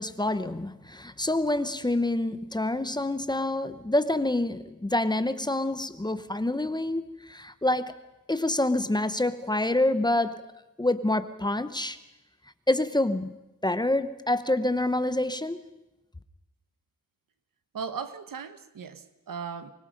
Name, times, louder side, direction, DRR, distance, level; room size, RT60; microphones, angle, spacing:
voice 1, 0.0-8.0 8.3-10.5 10.8-12.0 12.7-13.4 13.6-15.6, left 1 dB, 15° left, 0.9 m, -27 dB
voice 2, 17.7-19.7, right 6 dB, 90° right, 1.3 m, -37 dB
24.5 x 21.5 x 5.3 m
wide cardioid pair, 125°, 32 cm